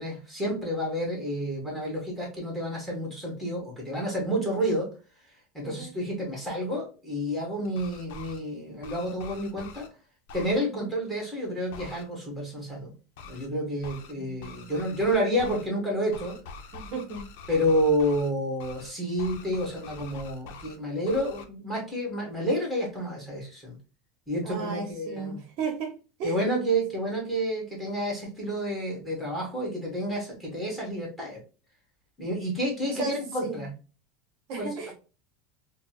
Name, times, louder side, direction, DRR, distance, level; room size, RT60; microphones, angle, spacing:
voice 1, 0.0-4.9 5.5-9.9 10.3-12.9 13.2-16.4 17.5-23.8 24.3-25.4 26.2-31.4 32.2-33.7 34.6-34.7, equal, ahead, 1.4 m, -29 dB
sound 1, 7.6-8.4 8.8-9.9 10.3-10.6 11.7-12.0 13.2-13.5 13.8-14.1 14.4-15.7 16.1-18.3 18.6-18.9 19.2-20.8 21.1-21.4, left 4 dB, 70° left, 0.6 m, -44 dB
voice 2, 14.2-14.7 16.7-17.3 24.4-26.4 32.9-33.7 34.5-34.9, right 4 dB, 50° right, 0.8 m, -35 dB
4.1 x 2.0 x 2.8 m
supercardioid pair, 150°, 0 cm